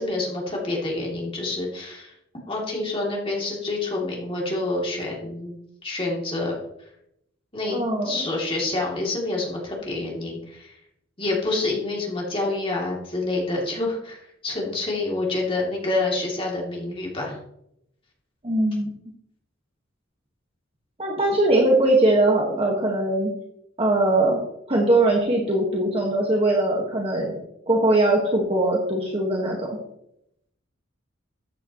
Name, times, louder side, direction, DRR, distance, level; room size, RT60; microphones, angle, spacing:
voice 1, 0.0-2.1 2.5-6.6 7.5-7.8 8.0-10.8 11.2-17.4, left 2 dB, 25° left, -3 dB, 2.8 m, -27 dB
voice 2, 7.7-8.3 18.4-18.9 21.0-23.3 23.8-24.4 24.7-27.4 27.7-29.8, right 2 dB, 30° right, -1 dB, 1.6 m, -21 dB
13.5 x 9.0 x 3.1 m, 0.79 s
head